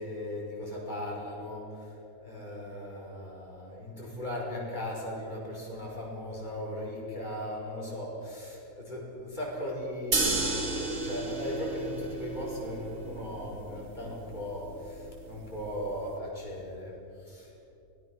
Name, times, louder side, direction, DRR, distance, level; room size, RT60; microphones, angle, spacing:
voice 1, 0.0-17.7, left 1 dB, 25° left, -3 dB, 6.0 m, -38 dB
sound 1, 10.1-16.1, right 3 dB, 50° right, 2.6 m, -34 dB
24.0 x 19.0 x 6.5 m, 2.8 s
omnidirectional pair, 1.8 m